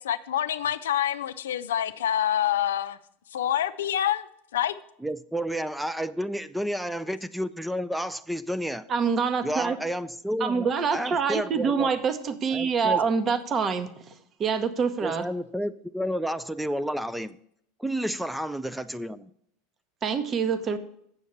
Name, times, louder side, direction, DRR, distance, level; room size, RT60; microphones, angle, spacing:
voice 1, 0.0-3.0 3.3-4.3 4.5-4.7, left 10 dB, 75° left, 12 dB, 0.5 m, -26 dB
voice 2, 5.0-8.9 9.4-11.9 12.5-13.0 15.0-17.4 17.8-19.3, equal, 5° right, 13 dB, 0.4 m, -31 dB
voice 3, 8.9-9.8 10.4-13.9 14.4-15.2 20.0-20.8, right 6 dB, 35° right, 9 dB, 0.9 m, -25 dB
8.1 x 6.3 x 7.1 m, 0.71 s
hypercardioid pair, 85°, 0 cm